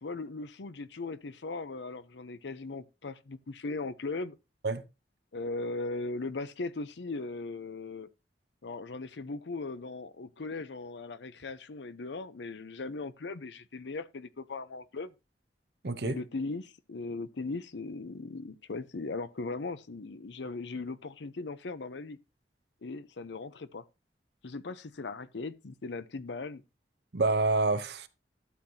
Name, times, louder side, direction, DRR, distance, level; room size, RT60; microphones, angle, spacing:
voice 1, 0.0-4.4 5.3-8.1 8.6-15.1 16.0-22.2 22.8-23.8 24.4-26.6, left 3 dB, 90° left, 0.7 m, -38 dB
voice 2, 15.8-16.2 27.1-28.1, right 3 dB, 70° right, 0.8 m, -27 dB
12.5 x 7.9 x 2.8 m
head